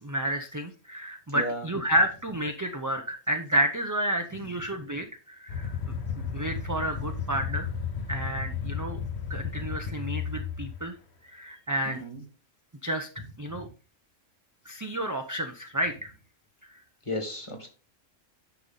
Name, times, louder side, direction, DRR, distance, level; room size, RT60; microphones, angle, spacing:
voice 1, 0.0-5.7 6.2-7.7 8.1-9.0 9.3-10.9 11.3-12.0 12.8-13.1 13.4-13.7 14.7-16.1, equal, 20° right, 5 dB, 0.5 m, -30 dB
voice 2, 1.3-1.7 4.3-4.5 11.8-12.2 13.5-13.7 17.0-17.7, equal, 25° left, 3 dB, 2.0 m, -35 dB
sound 1, 5.5-10.8, left 6 dB, 55° left, 1.2 m, -33 dB
9.9 x 5.7 x 4.0 m, 0.37 s
omnidirectional pair, 1.3 m